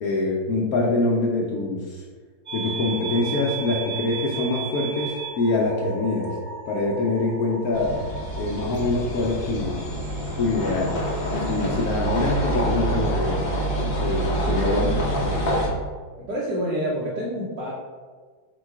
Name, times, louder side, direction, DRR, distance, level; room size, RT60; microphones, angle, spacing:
voice 1, 0.0-2.0 2.5-6.3 6.7-8.0 8.4-9.8 10.4-10.9 11.5-13.5 13.8-14.9 15.2-15.6, left 2 dB, 80° left, -3 dB, 0.8 m, -25 dB
sound 1, 2.5-11.8, right 5 dB, 30° right, 0.7 m, -37 dB
sound 2, 7.7-15.7, right 1 dB, 45° left, 0.6 m, -26 dB
voice 2, 14.3-15.3 16.2-17.7, equal, 65° right, -5 dB, 1.3 m, -29 dB
4.5 x 2.3 x 4.5 m, 1.5 s
omnidirectional pair, 2.2 m